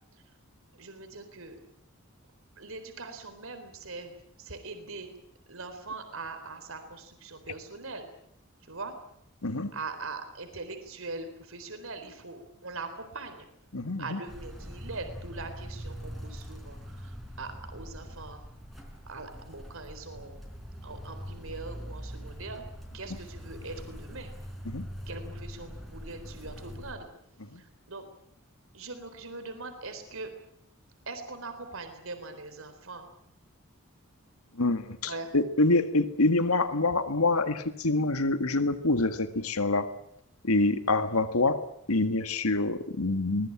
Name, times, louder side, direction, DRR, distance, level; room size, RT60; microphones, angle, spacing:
voice 1, 0.7-1.6 2.6-5.1 5.5-8.1 8.6-8.9 9.7-13.5 14.0-18.5 19.1-20.4 20.8-22.7 22.9-24.3 25.1-27.1 27.5-28.0 28.7-30.3 31.1-33.1 35.0-35.3, right 3 dB, 65° right, 8 dB, 4.0 m, -41 dB
voice 2, 9.4-9.7 13.7-14.2 24.7-24.9 27.5-27.6 34.6-39.9 40.4-41.6 41.9-43.5, left 2 dB, 90° left, 10 dB, 1.8 m, -26 dB
sound 1, 14.3-26.9, equal, ahead, 5.0 m, -43 dB
22.5 x 20.5 x 8.8 m, 0.72 s
head